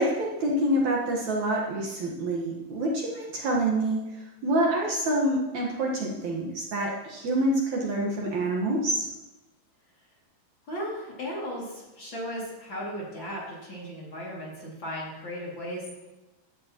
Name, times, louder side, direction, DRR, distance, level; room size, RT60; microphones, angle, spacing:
voice 1, 0.0-9.1, right 1 dB, 60° right, -1 dB, 2.5 m, -27 dB
voice 2, 10.7-15.9, equal, 35° left, -5 dB, 2.9 m, -36 dB
16.0 x 12.0 x 3.0 m, 1.1 s
omnidirectional pair, 4.1 m